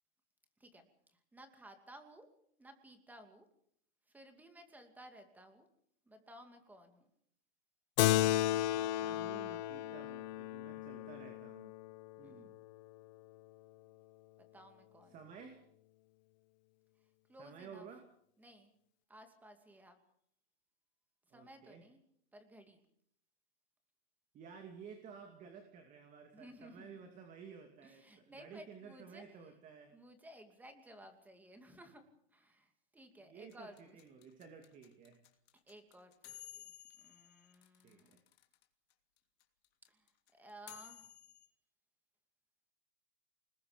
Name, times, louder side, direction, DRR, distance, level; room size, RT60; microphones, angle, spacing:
voice 1, 0.6-2.3 2.6-3.5 4.1-5.7 6.0-7.1 12.2-12.5 14.4-15.2 17.3-17.9 18.4-18.7 19.1-20.0 21.3-22.0 22.3-22.8 26.3-27.2 27.8-29.5 29.9-32.0 32.3-34.0 35.5-38.2 39.8-41.1, right 1 dB, 5° right, 6 dB, 2.5 m, -57 dB
Keyboard (musical), 8.0-12.9, left 14 dB, 40° left, 0.8 m, -34 dB
voice 2, 8.5-11.7 12.2-12.6 15.1-15.6 17.4-18.0 21.3-21.8 24.3-28.0 28.4-29.9 33.2-35.2 37.8-38.2, right 6 dB, 20° right, 4 dB, 2.6 m, -53 dB
sound 1, 33.5-38.6 38.9-39.0 39.2-41.5, left 13 dB, 65° left, 3.0 m, -55 dB
28.5 x 20.5 x 5.2 m, 0.68 s
supercardioid pair, 160°, 33 cm